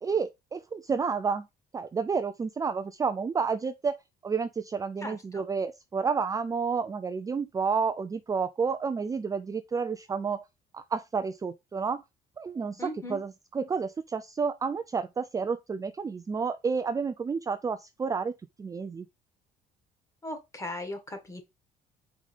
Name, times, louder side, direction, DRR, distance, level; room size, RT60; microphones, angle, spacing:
voice 1, 0.0-1.5 1.7-4.0 4.2-10.4 10.7-12.0 12.4-18.3 18.6-19.1, right 5 dB, 20° right, 0.4 m, -30 dB
voice 2, 5.0-5.4 12.8-13.2 20.2-21.4, left 1 dB, 15° left, 1.9 m, -38 dB
4.9 x 3.7 x 5.5 m
cardioid pair, 110°, 17 cm